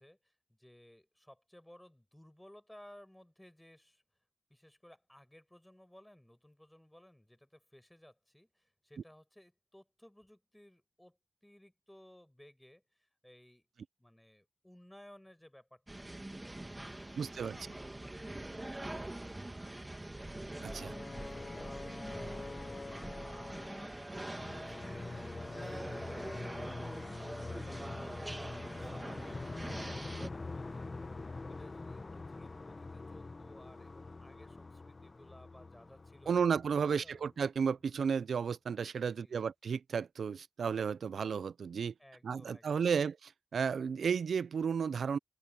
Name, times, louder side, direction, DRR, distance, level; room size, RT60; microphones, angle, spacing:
voice 1, 0.0-4.0 4.5-11.2 11.4-13.7 14.0-16.1 16.6-18.3 18.6-20.3 20.7-24.9 25.4-26.3 26.6-28.0 28.3-31.0 31.5-36.3 36.7-37.2 39.0-39.4 42.0-42.9, left 1 dB, 10° left, 7.4 m, -59 dB
sound 1, 15.9-30.3, right 1 dB, 20° right, 1.6 m, -44 dB
voice 2, 17.2-17.6 20.6-20.9 36.3-41.9 42.2-45.2, right 6 dB, 85° right, 0.5 m, -33 dB
sound 2, 20.4-37.3, left 3 dB, 40° left, 0.9 m, -45 dB
cardioid pair, 70°, 0 cm